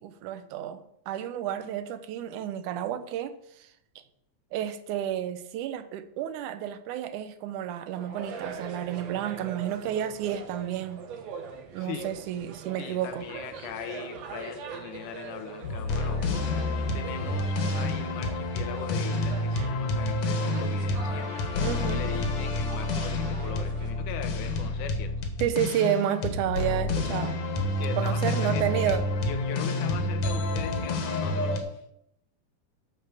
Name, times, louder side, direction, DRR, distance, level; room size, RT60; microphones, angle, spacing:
voice 1, 0.0-3.7 4.5-11.0 11.7-13.3 21.6-22.1 25.4-27.3 28.0-29.0, right 10 dB, 85° right, 11 dB, 2.3 m, -31 dB
sound 1, 7.9-23.9, right 6 dB, 65° right, 2.4 m, -42 dB
voice 2, 11.8-12.1 12.7-16.3 16.5-21.3 21.9-25.1 27.8-31.8, left 9 dB, 85° left, 9 dB, 2.4 m, -40 dB
sound 2, 15.6-31.6, left 2 dB, 70° left, 2.8 m, -29 dB
11.5 x 5.3 x 7.1 m, 0.78 s
omnidirectional pair, 3.4 m